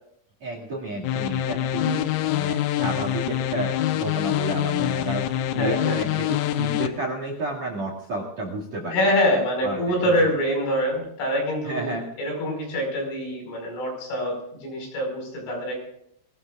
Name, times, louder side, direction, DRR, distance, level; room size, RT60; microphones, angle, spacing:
voice 1, 0.4-9.1 9.6-10.3 11.6-12.1, right 2 dB, 45° right, 2 dB, 2.6 m, -31 dB
sound 1, 1.0-6.9, left 12 dB, 90° left, 3.5 m, -25 dB
voice 2, 5.6-6.0 8.9-15.8, equal, 70° left, 1 dB, 7.8 m, -25 dB
23.5 x 18.5 x 2.5 m, 0.70 s
omnidirectional pair, 5.9 m